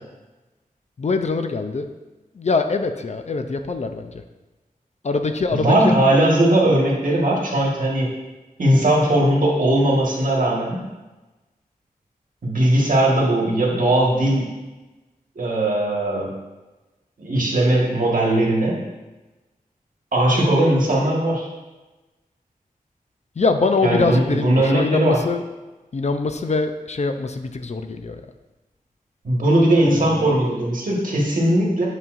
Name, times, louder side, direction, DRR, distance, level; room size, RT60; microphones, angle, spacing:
voice 1, 1.0-1.9 2.4-4.2 5.0-5.9 23.4-25.4 25.9-28.2 29.8-30.3, left 4 dB, 50° left, 7 dB, 0.5 m, -23 dB
voice 2, 5.5-8.1 8.6-10.8 12.4-14.5 15.3-16.3 17.2-18.8 20.1-21.5 23.8-25.2 29.2-31.9, right 1 dB, 65° right, -2 dB, 1.5 m, -19 dB
8.3 x 5.5 x 2.5 m, 1.1 s
wide cardioid pair, 100°, 15 cm